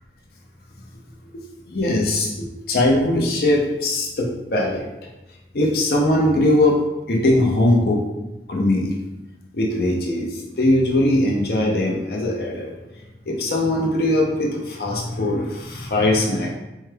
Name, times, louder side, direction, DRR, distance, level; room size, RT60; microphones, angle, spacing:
voice 1, 1.7-4.9 5.5-6.8 7.1-8.0 8.5-9.0 9.5-12.7 13.2-16.6, left 1 dB, 60° left, -1 dB, 0.6 m, -20 dB
4.5 x 2.2 x 3.3 m, 0.98 s
head